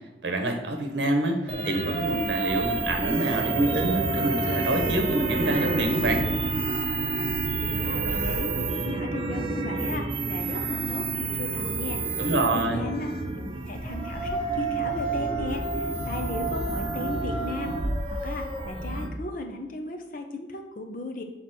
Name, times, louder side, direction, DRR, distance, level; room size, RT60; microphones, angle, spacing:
voice 1, 0.2-6.3 12.2-12.8, right 1 dB, 75° right, 4 dB, 0.9 m, -26 dB
sound 1, 1.5-19.1, right 4 dB, 30° right, 0.8 m, -30 dB
sound 2, 1.9-19.0, right 2 dB, 5° left, 1.3 m, -33 dB
voice 2, 7.6-12.0 12.4-17.8 18.1-21.2, left 2 dB, 45° left, 4 dB, 0.8 m, -36 dB
6.6 x 4.1 x 6.0 m, 1.1 s
head